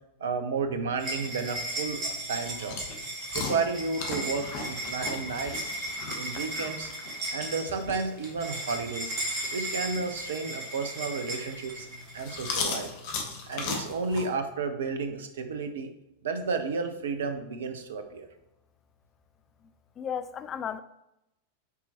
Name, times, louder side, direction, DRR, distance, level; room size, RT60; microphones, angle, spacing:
voice 1, 0.2-2.8 3.3-5.7 6.1-6.9 7.3-9.1 9.5-11.9 12.1-12.9 13.5-15.9 16.2-18.3, right 4 dB, 65° right, 0.7 m, -32 dB
sound 1, 1.0-12.6, right 1 dB, 40° right, 2.2 m, -36 dB
sound 2, 1.7-14.3, left 4 dB, 45° left, 1.1 m, -39 dB
voice 2, 20.0-20.8, left 8 dB, 25° left, 0.4 m, -34 dB
8.2 x 4.4 x 2.9 m
figure-of-eight pair, 90°, 0 cm